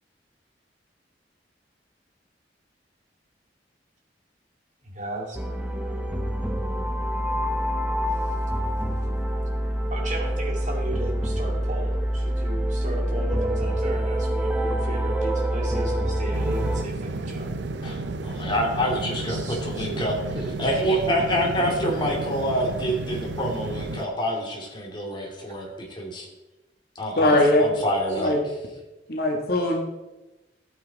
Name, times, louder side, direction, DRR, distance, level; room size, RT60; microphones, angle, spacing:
voice 1, 4.8-5.4 9.9-17.5 19.3-20.0 20.3-20.7 21.3-21.9 25.3-25.4 28.1-28.2, right 1 dB, 45° right, -1 dB, 2.5 m, -35 dB
sound 1, 5.3-16.8, equal, 5° right, 0.8 m, -26 dB
sound 2, 16.3-24.0, right 2 dB, 75° right, 0.6 m, -32 dB
voice 2, 18.2-20.1 20.6-26.3 27.0-27.3 27.6-28.3, equal, 25° left, 0 dB, 2.5 m, -27 dB
voice 3, 27.2-27.6 28.2-28.4 29.1-29.8, left 1 dB, 60° left, 2 dB, 1.6 m, -20 dB
12.5 x 8.5 x 4.1 m, 1.0 s
head